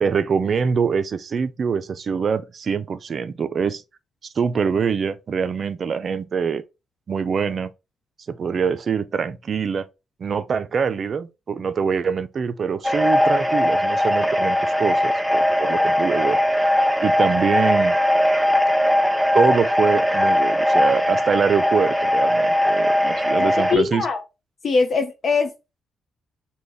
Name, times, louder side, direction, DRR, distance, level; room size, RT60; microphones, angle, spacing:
voice 1, 0.0-3.8 4.4-6.6 7.1-7.7 8.3-9.9 10.2-16.4 17.0-17.9 19.3-24.1, right 6 dB, 55° right, 0.4 m, -24 dB
sound 1, 12.8-23.8, equal, ahead, 0.6 m, -19 dB
voice 2, 23.4-24.2 24.6-25.5, left 4 dB, 55° left, 0.5 m, -21 dB
3.3 x 2.2 x 3.9 m
supercardioid pair, 65°, 0 cm